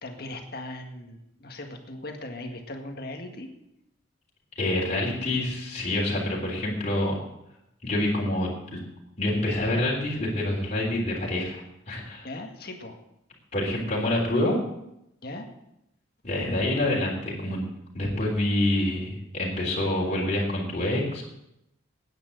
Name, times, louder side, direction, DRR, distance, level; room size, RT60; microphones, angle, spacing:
voice 1, 0.0-3.5 12.2-13.0 15.2-15.5, left 1 dB, 50° left, 4 dB, 1.8 m, -38 dB
voice 2, 4.6-7.1 7.8-8.8 9.2-12.3 13.5-14.6 16.2-17.6 17.9-21.2, left 1 dB, 35° left, -4 dB, 3.6 m, -27 dB
10.5 x 9.3 x 7.9 m, 0.83 s
head